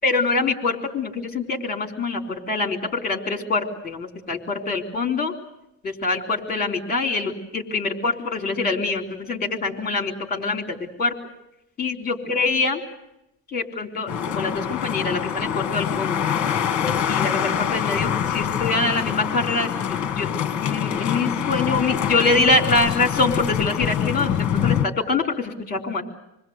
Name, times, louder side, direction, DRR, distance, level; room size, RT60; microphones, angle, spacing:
voice 1, 0.0-5.3 5.8-11.1 11.8-12.8 13.5-16.2 17.1-20.3 20.6-26.0, left 3 dB, 20° left, 5 dB, 3.7 m, -24 dB
sound 1, 14.1-24.9, left 9 dB, 35° left, 1.5 m, -25 dB
27.5 x 21.0 x 8.0 m, 0.86 s
cardioid pair, 160°, 47 cm